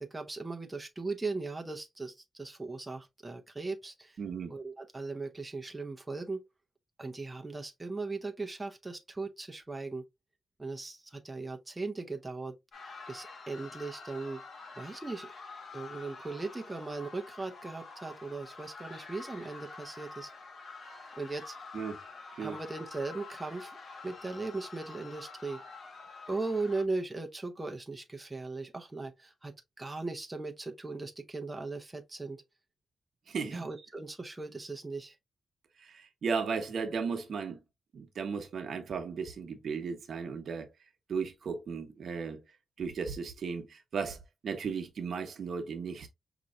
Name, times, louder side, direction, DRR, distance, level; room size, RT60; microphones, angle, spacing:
voice 1, 0.0-4.2 4.5-6.4 7.0-10.0 10.6-12.5 13.1-14.4 14.8-15.3 15.7-20.3 21.1-21.6 22.4-23.8 24.0-25.6 26.3-32.4 33.5-35.1, right 3 dB, 15° right, 0.6 m, -38 dB
voice 2, 4.2-4.5 21.7-22.0 22.4-22.6 33.3-33.7 35.8-37.6 37.9-40.7 41.1-42.4 42.8-46.1, right 5 dB, 65° right, 0.9 m, -35 dB
sound 1, 12.7-26.8, left 4 dB, 55° left, 1.3 m, -48 dB
5.2 x 2.9 x 2.4 m
wide cardioid pair, 120°, 0 cm